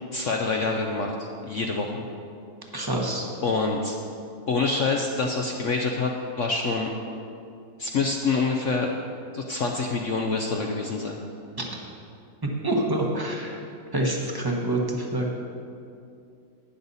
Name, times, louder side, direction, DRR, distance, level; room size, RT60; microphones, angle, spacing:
voice 1, 0.1-1.1 1.4-2.1 3.4-4.0 4.5-6.9 7.8-8.9 9.3-11.2, left 4 dB, 65° left, 1 dB, 0.7 m, -26 dB
voice 2, 2.7-3.2 11.6-11.7 12.6-13.6 13.9-15.3, right 1 dB, 15° right, 0 dB, 0.8 m, -26 dB
11.5 x 9.5 x 4.1 m, 2.5 s
omnidirectional pair, 2.0 m